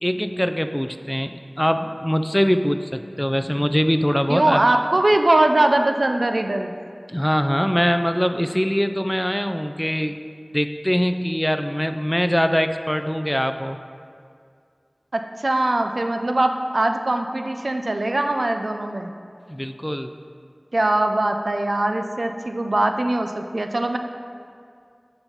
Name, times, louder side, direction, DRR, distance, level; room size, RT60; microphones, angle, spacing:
voice 1, 0.0-4.6 7.1-10.1 10.5-13.8 19.5-20.1, equal, 10° left, 8 dB, 0.3 m, -22 dB
voice 2, 4.3-6.7 15.1-19.1 20.7-24.0, right 1 dB, 80° right, 6 dB, 0.4 m, -21 dB
10.5 x 4.1 x 4.0 m, 2.2 s
wide cardioid pair, 40°, 0 cm